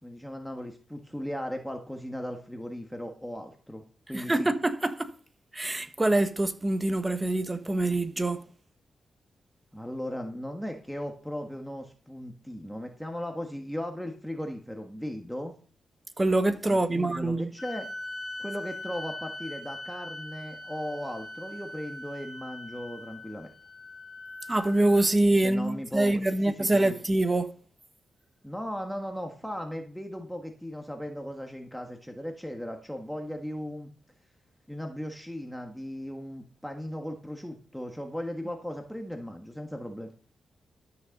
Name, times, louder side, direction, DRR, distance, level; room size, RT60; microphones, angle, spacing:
voice 1, 0.0-4.5 9.7-15.5 16.7-17.9 18.4-23.5 25.4-26.9 28.4-33.9 34.7-40.1, equal, ahead, 1.5 m, -37 dB
voice 2, 4.1-5.1 5.5-8.4 16.2-17.5 24.5-27.5, right 2 dB, 20° right, 1.3 m, -25 dB
sound 1, 17.6-25.1, left 2 dB, 20° left, 2.7 m, -41 dB
13.0 x 6.6 x 5.3 m
cardioid pair, 75°, 0 cm